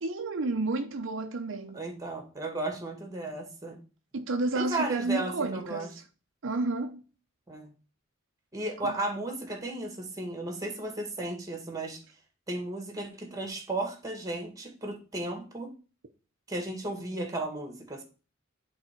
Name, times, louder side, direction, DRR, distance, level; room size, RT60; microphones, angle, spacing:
voice 1, 0.0-1.8 4.1-5.9 6.4-7.0 8.8-8.9, right 2 dB, 65° right, 0.7 m, -31 dB
voice 2, 1.7-3.8 4.5-5.9 7.5-7.7 8.5-12.0 12.5-15.7 16.5-18.0, right 2 dB, 15° right, 1.7 m, -34 dB
10.0 x 3.8 x 4.5 m
head